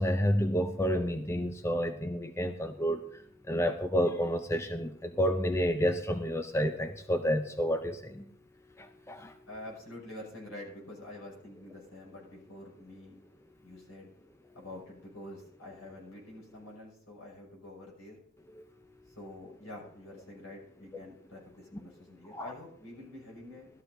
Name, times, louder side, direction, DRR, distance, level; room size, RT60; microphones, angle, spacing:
voice 1, 0.0-3.0 3.5-8.2 8.8-9.3 22.3-22.5, equal, 15° left, 7 dB, 0.6 m, -30 dB
voice 2, 9.5-13.2 13.6-14.1 14.5-18.2 19.1-23.7, left 1 dB, 80° left, -3 dB, 6.3 m, -47 dB
18.5 x 13.5 x 2.7 m, 0.67 s
head